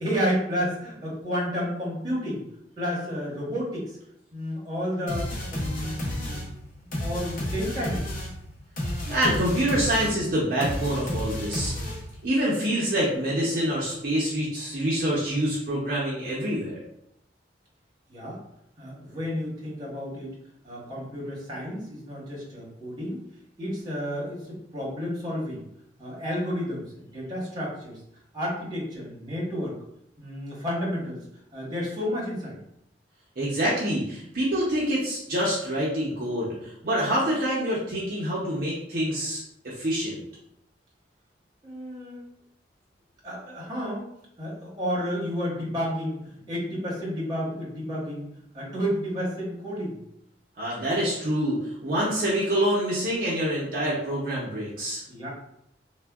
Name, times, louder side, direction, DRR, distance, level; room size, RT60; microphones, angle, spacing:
voice 1, 0.0-2.4 2.8-4.0 4.3-6.4 7.0-8.2 18.1-18.4 18.8-20.3 20.6-23.2 23.6-25.6 26.0-28.0 28.3-29.8 30.2-31.2 31.5-32.6 41.6-42.2 43.2-44.0 44.4-48.3 48.5-50.0 55.1-55.3, equal, 20° right, -6 dB, 1.0 m, -31 dB
sound 1, 5.1-12.3, left 1 dB, 50° left, 0.7 m, -32 dB
voice 2, 9.1-11.7 12.2-16.8 33.4-40.2 50.6-55.0, equal, 50° right, -6 dB, 0.6 m, -26 dB
3.4 x 2.1 x 2.2 m, 0.74 s
head